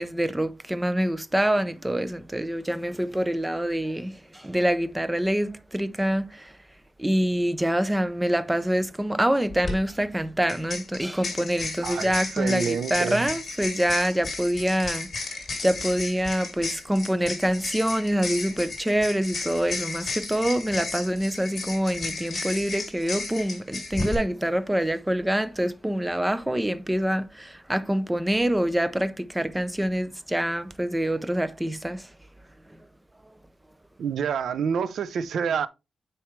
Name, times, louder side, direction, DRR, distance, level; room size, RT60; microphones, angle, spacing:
voice 1, 0.0-6.5 7.0-15.1 15.6-32.0, right 1 dB, 10° right, 0.5 m, -26 dB
sound 1, 9.5-9.7 10.5-24.2, left 3 dB, 30° left, 2.6 m, -34 dB
voice 2, 11.8-13.3 34.0-35.7, right 7 dB, 75° right, 0.5 m, -28 dB
9.2 x 4.5 x 3.2 m
wide cardioid pair, 160°, 0 cm